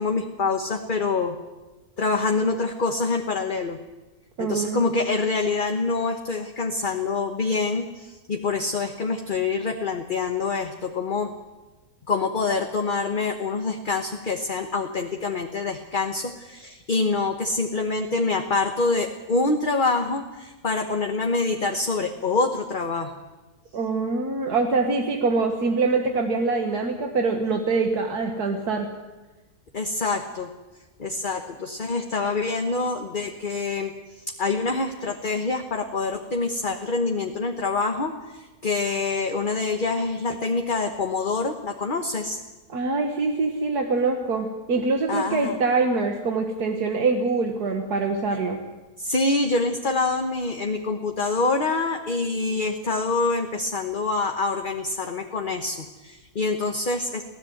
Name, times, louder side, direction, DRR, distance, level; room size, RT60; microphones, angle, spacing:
voice 1, 0.0-1.4 2.0-3.8 4.4-11.3 12.1-23.1 29.7-30.5 31.0-42.4 45.1-45.6 49.0-57.2, left 3 dB, 35° left, 4 dB, 1.3 m, -26 dB
voice 2, 4.4-4.9 23.7-28.9 42.7-48.6, right 3 dB, 90° right, 3 dB, 2.1 m, -24 dB
23.5 x 16.5 x 7.9 m, 1.1 s
omnidirectional pair, 1.6 m